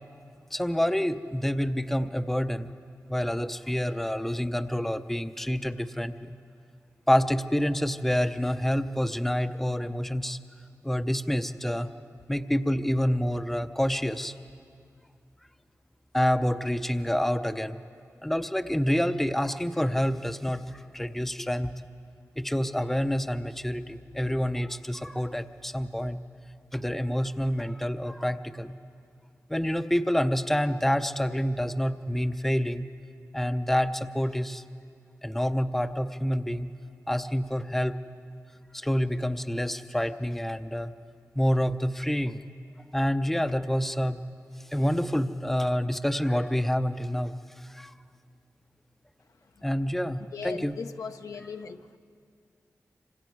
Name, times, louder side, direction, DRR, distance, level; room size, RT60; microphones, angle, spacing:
voice 1, 0.5-2.7 3.1-6.3 7.1-10.4 10.8-11.9 12.3-14.3 16.1-17.8 18.2-21.7 22.4-26.2 26.7-28.8 29.5-32.9 33.3-34.6 35.2-36.7 37.1-38.0 38.7-40.9 41.4-42.4 42.9-44.2 44.7-47.9 49.6-50.8, equal, 5° left, 9 dB, 0.7 m, -27 dB
voice 2, 50.3-52.0, left 5 dB, 75° left, 6 dB, 0.9 m, -38 dB
26.5 x 26.0 x 4.7 m, 2.3 s
cardioid pair, 70°, 6 cm